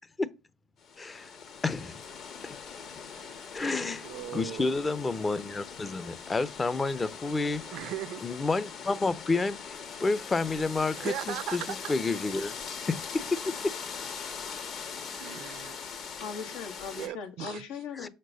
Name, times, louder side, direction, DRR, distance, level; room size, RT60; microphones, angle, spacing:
sound 1, 0.8-17.1, left 6 dB, 55° left, 1.8 m, -41 dB
voice 1, 1.0-1.3 1.6-2.0 2.4-2.5 3.5-4.1 4.3-7.6 8.2-11.6 11.9-12.5 12.9-13.4 18.0-18.1, left 3 dB, 20° left, 0.7 m, -30 dB
voice 2, 3.1-3.4 4.0-4.9 7.7-8.3 10.9-11.9 15.2-15.8 16.9-17.6, right 14 dB, 65° right, 0.6 m, -38 dB
voice 3, 16.2-18.1, left 5 dB, 75° left, 1.7 m, -39 dB
6.4 x 4.5 x 6.4 m
supercardioid pair, 95°, 0 cm